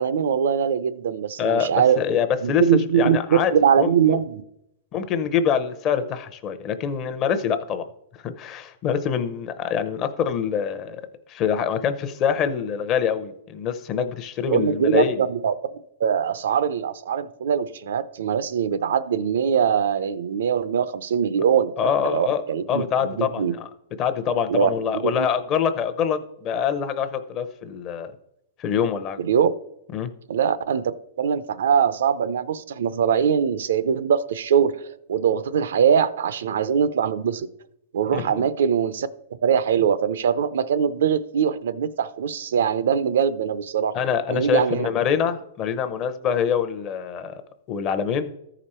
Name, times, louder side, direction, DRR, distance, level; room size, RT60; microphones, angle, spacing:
voice 1, 0.0-2.0 2.4-4.4 14.5-15.5 16.0-23.5 24.5-25.3 29.2-29.5 30.3-30.9 31.2-37.5 37.9-39.1 39.4-43.9 44.3-44.9, right 7 dB, 80° right, 14 dB, 0.6 m, -22 dB
voice 2, 1.4-2.6 2.9-3.5 3.8-4.2 4.9-7.8 8.2-11.0 11.3-15.2 21.8-22.4 22.7-23.7 24.0-28.1 28.6-29.2 29.9-30.1 38.1-38.4 43.9-47.4 47.7-48.3, left 7 dB, 25° left, 9 dB, 0.7 m, -25 dB
14.0 x 5.0 x 4.3 m, 0.79 s
supercardioid pair, 160°, 0 cm